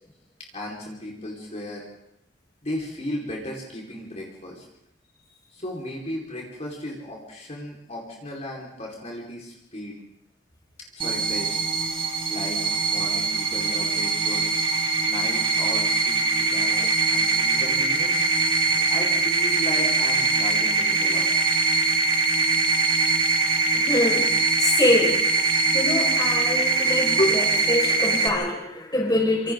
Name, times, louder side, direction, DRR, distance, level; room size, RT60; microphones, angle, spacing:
voice 1, 0.5-1.8 2.6-4.6 5.5-10.0 11.0-11.6 12.3-14.5 15.0-18.2 18.9-21.3 27.2-27.4, left 1 dB, 35° left, -2 dB, 4.9 m, -34 dB
sound 1, 11.0-28.3, right 3 dB, 30° right, 2.6 m, -22 dB
voice 2, 23.7-24.3 24.6-29.5, left 1 dB, 20° left, 0 dB, 5.3 m, -25 dB
27.0 x 27.0 x 4.0 m, 0.76 s
head